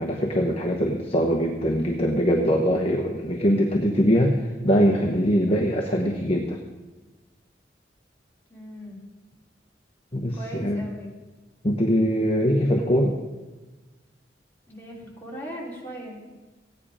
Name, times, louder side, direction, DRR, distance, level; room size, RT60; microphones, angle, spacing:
voice 1, 0.0-6.6 10.1-10.8 11.6-13.2, equal, 35° left, 1 dB, 1.1 m, -22 dB
voice 2, 8.5-9.0 10.3-11.1 14.7-16.2, right 1 dB, 15° left, -5 dB, 3.3 m, -38 dB
16.0 x 9.7 x 5.0 m, 1.2 s
head